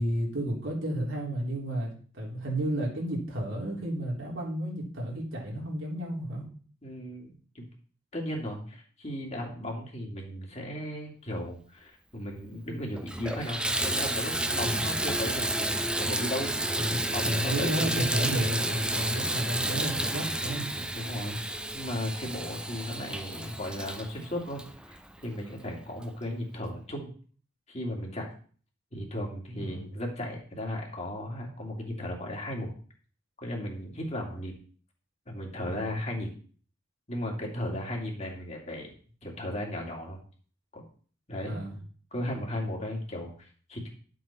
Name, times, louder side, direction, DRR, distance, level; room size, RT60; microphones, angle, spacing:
voice 1, 0.0-6.4 14.6-14.8 16.8-20.7 29.5-29.8 35.6-35.8 41.4-41.8, right 1 dB, 75° right, -2 dB, 3.5 m, -32 dB
voice 2, 6.8-7.6 8.1-16.6 17.1-18.0 20.8-27.1 27.7-28.3 28.9-32.7 33.4-34.6 35.3-36.3 37.1-38.9 39.2-40.2 40.7-40.8 41.3-41.6 42.1-43.9, left 1 dB, 35° left, -1 dB, 2.6 m, -36 dB
Water tap faucet / Bathtub (filling or washing), 12.4-12.5 13.0-25.4 26.0-26.1 26.6-26.7, right 1 dB, 5° right, 0.6 m, -31 dB
11.0 x 7.7 x 4.4 m, 0.43 s
head